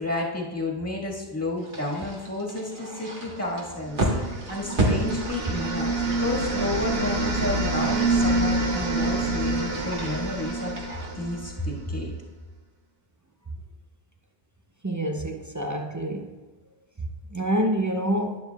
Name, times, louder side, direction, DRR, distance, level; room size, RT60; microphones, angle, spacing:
voice 1, 0.0-10.7 11.2-12.1, left 1 dB, 15° left, -3 dB, 1.7 m, -31 dB
sound 1, 1.6-11.1, right 1 dB, 55° right, 1.7 m, -33 dB
sound 2, 3.9-11.9, right 2 dB, 75° right, 1.4 m, -27 dB
voice 2, 14.8-16.3 17.3-18.4, right 1 dB, 20° right, 3 dB, 0.6 m, -27 dB
11.5 x 9.8 x 2.4 m, 1.2 s
omnidirectional pair, 1.0 m